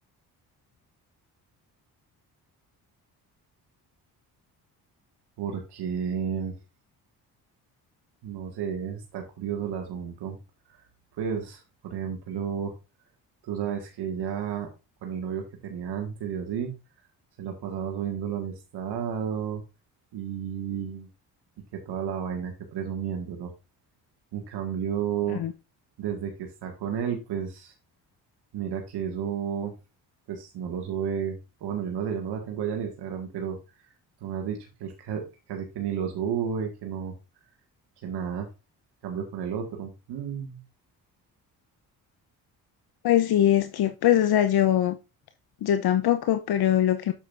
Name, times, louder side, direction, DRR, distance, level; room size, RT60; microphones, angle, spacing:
voice 1, 5.4-6.5 8.2-10.4 10.7-10.9 11.2-12.7 13.4-14.7 15.0-16.7 17.4-19.6 20.1-21.1 21.7-23.5 24.3-25.4 26.0-27.7 28.5-29.7 30.3-33.9 34.2-37.1 38.0-38.5 39.0-40.6, right 8 dB, 75° right, 1.9 m, -32 dB
voice 2, 43.0-45.0 45.6-47.1, left 11 dB, 65° left, 0.9 m, -22 dB
8.4 x 7.3 x 2.6 m
supercardioid pair, 65°, 40 cm